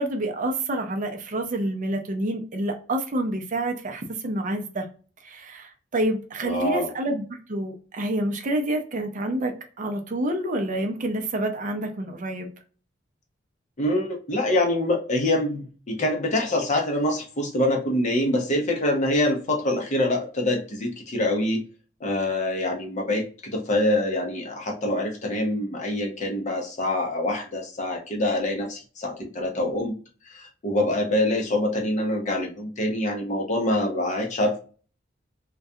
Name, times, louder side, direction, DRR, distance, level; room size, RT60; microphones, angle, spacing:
voice 1, 0.0-4.9 5.2-7.2 7.5-12.5, right 1 dB, 45° right, 0.5 m, -28 dB
voice 2, 6.4-6.9 13.8-21.6 22.0-29.9 30.3-34.6, left 1 dB, 40° left, 0.6 m, -25 dB
2.3 x 2.2 x 2.6 m
head